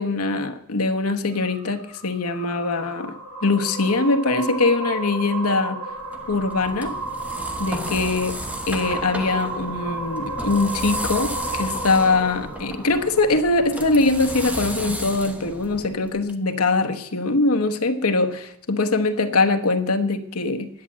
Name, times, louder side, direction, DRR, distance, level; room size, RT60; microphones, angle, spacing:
voice 1, 0.0-3.1 3.4-5.8 6.3-7.0 7.6-8.4 8.7-20.7, left 3 dB, 70° left, 7 dB, 1.1 m, -22 dB
sound 1, 1.3-13.8, right 2 dB, 90° right, 3.9 m, -33 dB
sound 2, 6.0-16.3, equal, 5° right, 1.1 m, -34 dB
10.5 x 7.3 x 8.6 m, 0.77 s
head